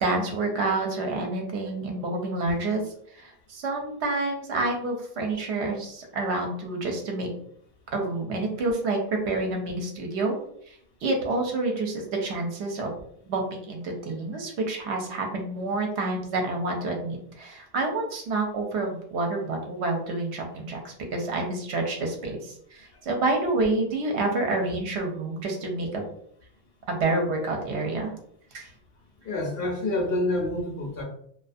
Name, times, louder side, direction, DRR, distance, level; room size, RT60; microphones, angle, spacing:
voice 1, 0.0-2.8 3.1-7.3 7.9-9.0 9.3-10.4 10.7-12.9 13.3-26.0 26.9-28.1 28.5-28.7, right 2 dB, 70° right, 2 dB, 0.8 m, -28 dB
voice 2, 29.2-31.0, left 1 dB, 60° left, 0 dB, 0.7 m, -27 dB
2.4 x 2.2 x 2.5 m, 0.66 s
omnidirectional pair, 1.2 m